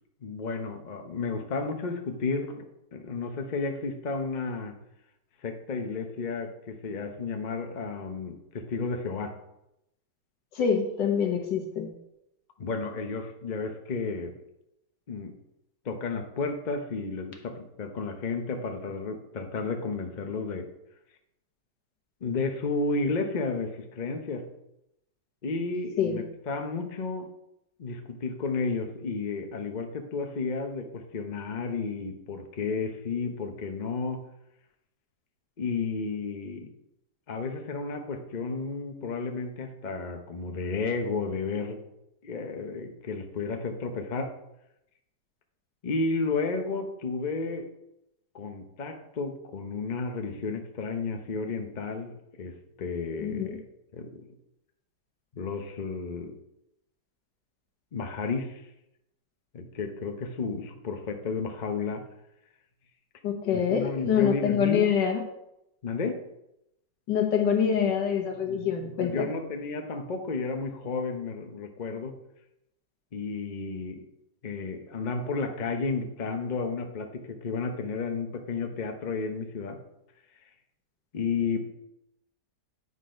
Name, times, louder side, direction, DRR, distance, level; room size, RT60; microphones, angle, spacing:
voice 1, 0.2-2.6 2.9-4.7 5.4-9.4 12.6-14.4 15.1-15.4 15.8-20.7 22.2-24.5 25.4-27.3 27.8-34.3 35.6-36.7 37.3-41.8 42.2-44.3 45.8-47.7 48.3-53.6 53.9-54.3 55.3-56.4 57.9-58.6 59.5-62.0 63.5-64.9 65.8-66.2 68.5-72.1 73.1-74.0 74.4-79.8 81.1-81.6, left 4 dB, 45° left, 4 dB, 0.6 m, -32 dB
voice 2, 10.5-11.9 26.0-26.2 53.2-53.6 63.2-65.2 67.1-69.4, left 7 dB, 80° left, 3 dB, 1.8 m, -25 dB
9.4 x 4.0 x 5.0 m, 0.84 s
omnidirectional pair, 1.9 m